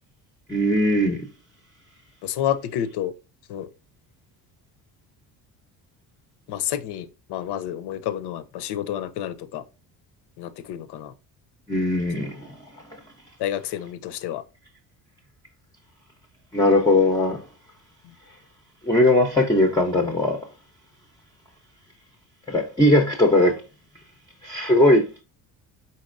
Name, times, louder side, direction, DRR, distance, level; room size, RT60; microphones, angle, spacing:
voice 1, 0.5-1.3 11.7-12.5 16.5-17.4 18.8-20.4 22.5-23.6 24.4-25.1, left 1 dB, 10° left, 0.5 m, -19 dB
voice 2, 2.2-3.1 3.5-3.7 6.5-9.6 10.4-11.1 12.2-12.3 13.4-14.4 18.0-18.1, left 11 dB, 70° left, 0.6 m, -29 dB
4.1 x 4.0 x 2.5 m
cardioid pair, 100°, 42 cm